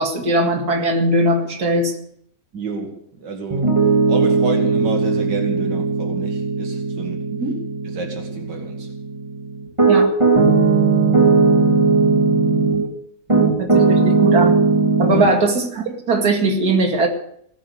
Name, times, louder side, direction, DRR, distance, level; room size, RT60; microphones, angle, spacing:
voice 1, 0.0-1.9 7.3-7.6 9.9-10.1 13.6-14.5 15.0-17.1, right 2 dB, 60° right, 3 dB, 2.8 m, -19 dB
voice 2, 2.5-3.7 4.1-7.3 7.8-8.9 15.1-15.3, right 4 dB, 85° right, 3 dB, 2.6 m, -29 dB
Piano, 3.5-12.9 13.3-15.3, right 4 dB, 15° right, 2.2 m, -17 dB
18.5 x 10.0 x 6.8 m, 0.67 s
omnidirectional pair, 1.8 m